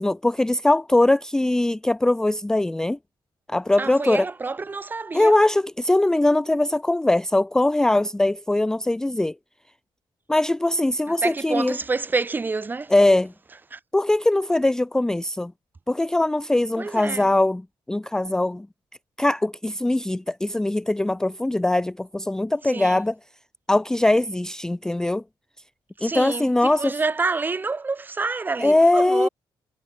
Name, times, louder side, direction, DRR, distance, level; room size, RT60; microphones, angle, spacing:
voice 1, 0.0-3.0 3.5-4.3 5.1-9.3 10.3-11.7 12.9-13.3 13.9-15.5 15.9-17.6 17.9-18.7 19.2-23.1 23.7-25.2 26.0-26.9 28.6-29.3, left 2 dB, 5° left, 0.4 m, -21 dB
voice 2, 3.8-5.3 11.1-12.9 13.7-13.8 16.7-17.3 22.6-23.0 26.0-29.3, right 3 dB, 20° right, 0.8 m, -28 dB
cardioid pair, 130°, 9 cm